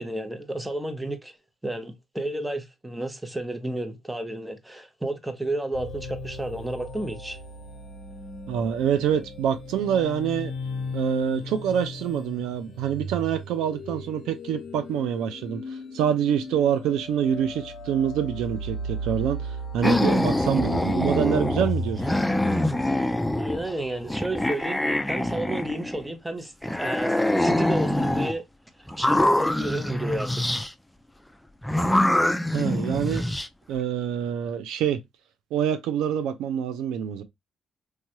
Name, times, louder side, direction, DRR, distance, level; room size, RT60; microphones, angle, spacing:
voice 1, 0.0-1.3 1.6-7.4 23.4-28.4 28.8-30.3, right 1 dB, 10° right, 0.7 m, -32 dB
sound 1, 5.7-24.1, left 1 dB, 60° left, 0.7 m, -36 dB
voice 2, 8.5-10.5 10.9-15.6 15.9-22.0 32.5-33.2 33.7-35.0 35.5-37.2, right 9 dB, 85° right, 0.4 m, -26 dB
sound 2, 19.8-21.7 22.0-23.7 24.1-26.1 26.6-28.4 28.9-30.7 31.6-33.5, left 1 dB, 5° left, 0.3 m, -24 dB
3.1 x 2.2 x 2.7 m
cardioid pair, 75°, 0 cm